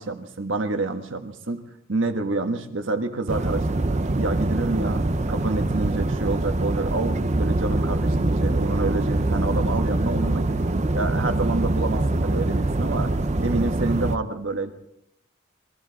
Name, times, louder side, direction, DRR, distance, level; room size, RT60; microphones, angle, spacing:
voice 1, 0.0-1.6 1.9-10.6 10.9-13.1 13.4-14.7, right 2 dB, 70° right, 7 dB, 1.4 m, -28 dB
sound 1, 3.3-14.2, right 2 dB, 35° right, 0.7 m, -24 dB
22.0 x 14.5 x 4.1 m, 0.79 s
head